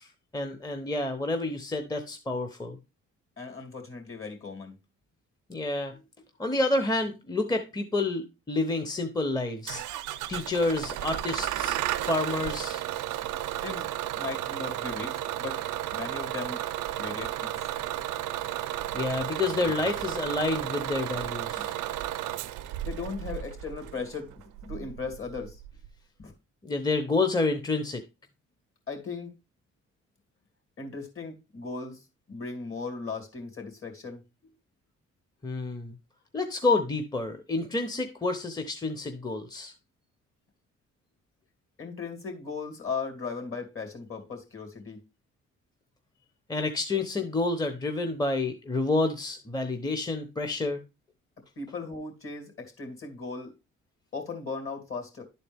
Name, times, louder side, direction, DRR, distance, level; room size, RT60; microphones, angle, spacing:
voice 1, 0.0-2.8 5.5-6.0 6.4-9.8 10.3-12.8 18.9-21.7 26.6-28.0 35.4-35.9 36.3-39.7 46.5-50.8, left 2 dB, 15° left, 0.8 m, -29 dB
voice 2, 3.4-4.7 13.6-13.9 14.1-15.6 15.9-16.6 17.0-17.6 21.6-21.7 22.8-24.3 24.6-25.6 26.2-26.3 28.9-29.3 30.8-32.0 32.3-34.2 41.8-45.0 51.6-53.5 54.1-55.2, left 4 dB, 45° left, 2.6 m, -37 dB
Bus / Engine starting, 9.7-25.9, right 13 dB, 80° right, 0.5 m, -33 dB
11.0 x 4.2 x 3.5 m
cardioid pair, 90°, 30 cm